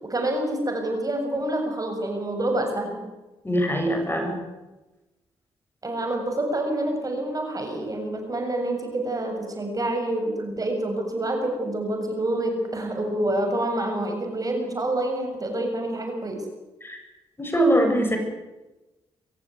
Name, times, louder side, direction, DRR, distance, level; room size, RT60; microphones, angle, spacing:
voice 1, 0.0-3.0 5.8-16.4, right 1 dB, 35° right, 4 dB, 7.4 m, -27 dB
voice 2, 3.4-4.4 16.8-17.0 17.4-18.2, right 1 dB, 20° left, 4 dB, 7.9 m, -22 dB
25.0 x 15.5 x 9.4 m, 1.1 s
supercardioid pair, 55°, 11 cm